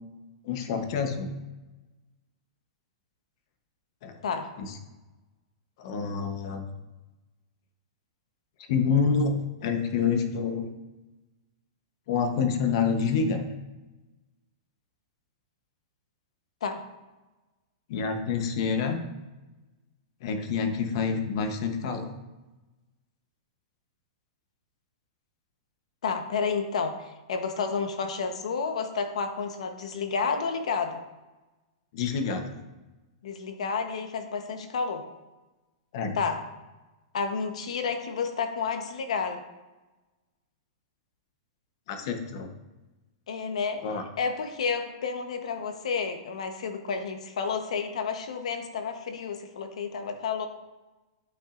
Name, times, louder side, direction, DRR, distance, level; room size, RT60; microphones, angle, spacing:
voice 1, 0.4-1.3 4.0-4.1 4.6-4.7 5.8-6.6 8.7-10.7 12.1-13.4 17.9-19.0 20.2-22.1 31.9-32.5 35.9-36.1 41.9-42.5 43.8-44.0, left 5 dB, 50° left, 6 dB, 0.9 m, -27 dB
voice 2, 26.0-31.0 33.2-35.0 36.1-36.4 37.1-39.4 43.3-43.8 44.2-50.5, left 5 dB, 80° left, 7 dB, 1.0 m, -30 dB
11.0 x 5.9 x 2.5 m, 1.1 s
supercardioid pair, 160°, 3 cm